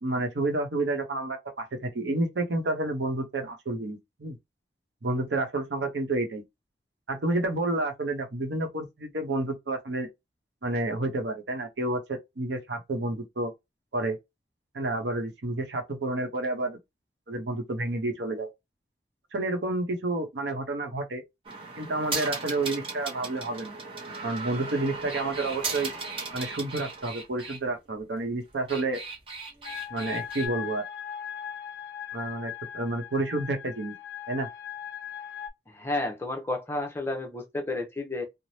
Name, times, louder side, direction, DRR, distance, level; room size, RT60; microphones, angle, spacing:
voice 1, 0.0-4.4 5.0-6.4 7.1-10.1 10.6-13.5 13.9-14.2 14.7-16.8 17.3-18.5 19.3-21.2 21.8-23.8 24.2-25.9 26.3-29.0 29.9-30.8 32.1-33.9 34.3-34.5, right 2 dB, 85° right, 0.8 m, -30 dB
sound 1, 21.4-27.6 28.5-30.5, right 3 dB, 30° right, 0.8 m, -36 dB
sound 2, 29.6-35.5, left 9 dB, 70° left, 0.5 m, -39 dB
voice 2, 35.7-38.3, left 2 dB, 15° left, 0.5 m, -31 dB
3.3 x 2.0 x 2.7 m
head